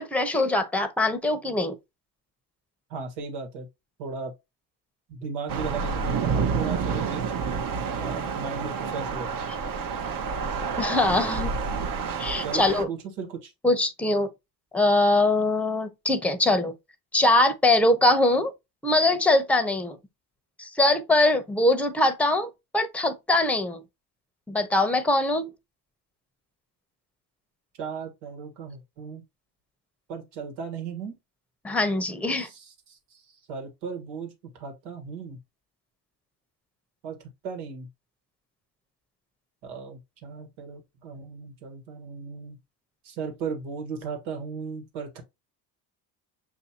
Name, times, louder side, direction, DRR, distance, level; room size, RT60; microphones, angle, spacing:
voice 1, 0.0-1.7 10.8-11.5 12.2-12.9 13.6-14.3 14.7-16.7 17.1-18.5 18.8-20.0 20.6-23.8 24.5-25.5 31.6-32.5, left 2 dB, 5° left, 0.7 m, -22 dB
voice 2, 2.9-3.7 4.0-4.3 5.1-7.3 8.0-9.4 12.4-12.6 12.9-13.5 27.8-29.2 30.1-31.2 32.4-33.2 33.5-35.4 37.0-37.2 37.4-37.9 39.6-42.6 43.0-45.2, right 5 dB, 90° right, 1.6 m, -36 dB
Thunder / Rain, 5.5-12.8, right 5 dB, 45° right, 0.8 m, -29 dB
6.3 x 2.8 x 2.8 m
supercardioid pair, 80°, 48 cm